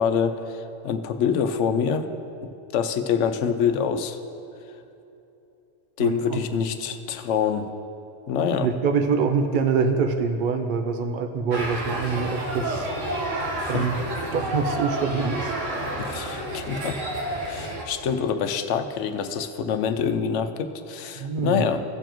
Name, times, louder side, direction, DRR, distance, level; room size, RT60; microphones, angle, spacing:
voice 1, 0.0-2.1 2.7-4.2 6.0-7.7 8.3-8.7 13.6-13.8 16.0-16.9 17.3-21.8, left 7 dB, 75° left, 8 dB, 0.9 m, -25 dB
voice 2, 6.0-6.4 8.6-12.9 13.7-14.0 14.3-15.5 21.2-21.6, right 5 dB, 60° right, 5 dB, 0.5 m, -25 dB
sound 1, 11.5-17.8, right 1 dB, 80° right, 1.6 m, -30 dB
16.5 x 6.9 x 3.0 m, 2.9 s
omnidirectional pair, 1.3 m